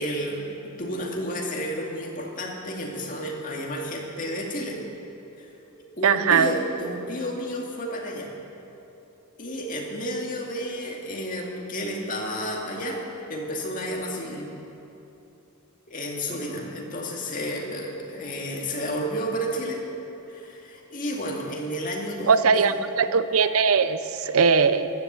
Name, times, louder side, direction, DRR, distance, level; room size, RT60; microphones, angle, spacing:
voice 1, 0.0-4.8 5.4-5.5 6.0-8.3 9.4-14.5 15.9-19.8 20.3-22.7, equal, 40° left, -1 dB, 2.2 m, -31 dB
voice 2, 6.0-6.5 22.3-24.9, right 5 dB, 80° right, 12 dB, 0.6 m, -20 dB
14.0 x 11.0 x 8.1 m, 2.9 s
head